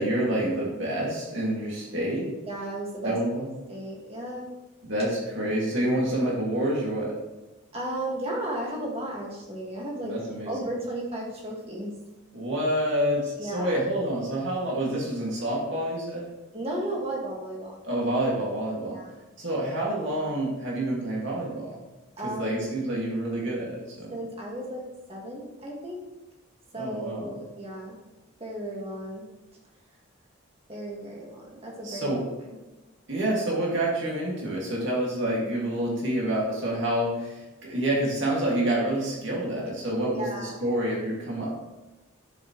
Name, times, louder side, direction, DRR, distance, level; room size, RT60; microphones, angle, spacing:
voice 1, 0.0-2.3 3.0-3.5 4.9-7.1 10.0-10.5 12.3-16.3 17.8-19.0 19.4-21.8 22.2-24.1 26.8-27.3 31.8-32.2 33.1-41.5, right 1 dB, 60° right, -4 dB, 2.3 m, -28 dB
voice 2, 2.4-3.2 3.7-4.4 7.7-10.2 10.5-11.9 13.4-13.8 16.5-17.8 18.9-19.1 22.2-22.6 24.1-24.8 25.1-26.0 26.7-28.0 28.4-29.3 30.7-32.2 32.4-32.6 40.0-40.5, right 1 dB, 30° right, -2 dB, 1.9 m, -34 dB
10.5 x 7.3 x 3.2 m, 1.1 s
head